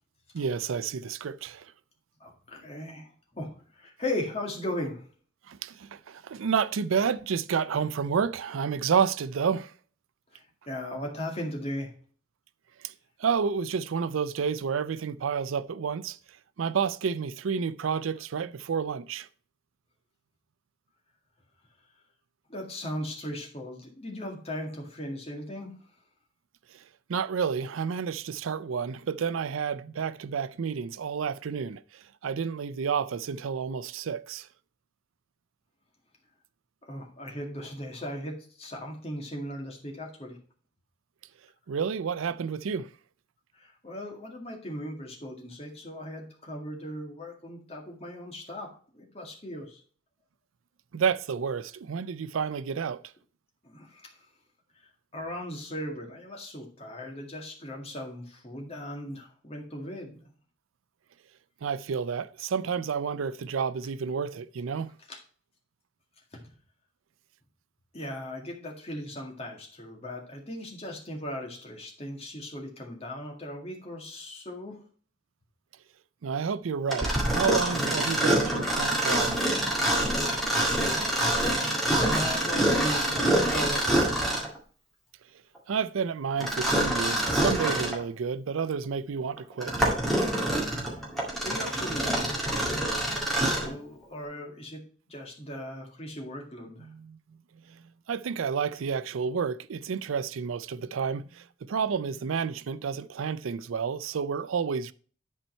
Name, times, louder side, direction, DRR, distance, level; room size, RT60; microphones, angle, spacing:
voice 1, 0.3-1.7 5.5-9.7 12.8-12.9 13.2-16.2 16.6-19.3 27.1-31.8 32.2-34.5 41.7-42.9 50.9-53.0 61.6-64.9 76.2-79.4 85.7-89.9 96.9-97.2 98.1-104.9, right 6 dB, 90° right, 0.4 m, -30 dB
voice 2, 2.2-5.1 10.3-11.9 22.5-25.8 36.9-40.4 43.5-49.8 53.6-54.2 54.8-60.3 65.1-65.2 66.3-66.5 67.9-74.8 82.0-84.1 90.8-91.0 91.4-92.9 93.5-94.8 95.1-96.9, left 1 dB, 30° left, 2.0 m, -38 dB
Mechanisms, 76.9-84.6 86.4-88.0 88.6-88.7 89.4-93.7, right 1 dB, ahead, 2.0 m, -26 dB
11.0 x 4.4 x 4.4 m
head